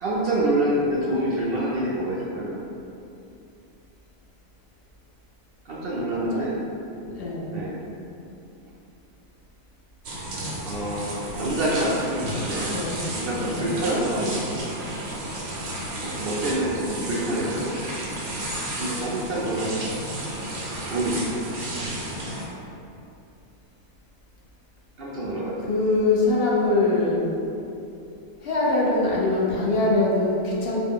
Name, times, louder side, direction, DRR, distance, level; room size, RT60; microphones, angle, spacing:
voice 1, 0.0-2.6 5.6-6.6 7.5-7.8 10.6-12.8 13.1-14.6 15.9-17.7 18.7-19.9 20.9-21.5 25.0-25.6, right 1 dB, 65° right, -5 dB, 0.6 m, -27 dB
voice 2, 6.1-6.5 7.1-7.5 12.7-12.9 13.3-13.8 25.6-27.3 28.4-30.8, left 2 dB, 55° left, -4 dB, 0.7 m, -23 dB
sound 1, 10.0-22.5, right 1 dB, 85° right, 1.2 m, -32 dB
4.1 x 2.2 x 3.6 m, 2.7 s
omnidirectional pair, 1.5 m